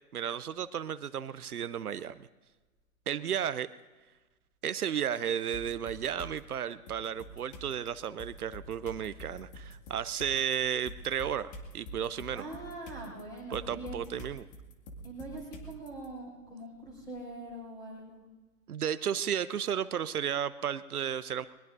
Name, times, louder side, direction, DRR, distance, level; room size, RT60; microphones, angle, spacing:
voice 1, 0.1-2.3 3.1-3.7 4.6-12.4 13.5-14.4 18.7-21.5, right 9 dB, 75° right, 14 dB, 0.7 m, -33 dB
sound 1, 5.5-6.4 6.9-16.1, equal, 35° left, 2.3 m, -47 dB
voice 2, 12.3-14.0 15.0-18.2, right 1 dB, 10° left, -3 dB, 6.2 m, -43 dB
21.5 x 21.5 x 2.6 m, 1.3 s
hypercardioid pair, 135°, 45 cm